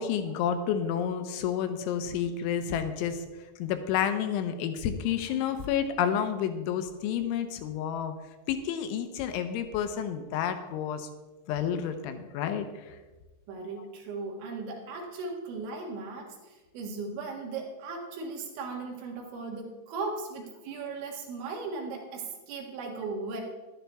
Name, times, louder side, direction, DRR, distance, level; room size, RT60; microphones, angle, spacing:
voice 1, 0.0-3.2 3.6-8.2 8.5-11.1 11.5-13.0 13.8-13.9, left 8 dB, 80° left, 8 dB, 2.9 m, -30 dB
voice 2, 13.5-23.4, right 4 dB, 70° right, 1 dB, 3.7 m, -37 dB
11.5 x 11.5 x 3.5 m, 1.2 s
omnidirectional pair, 5.9 m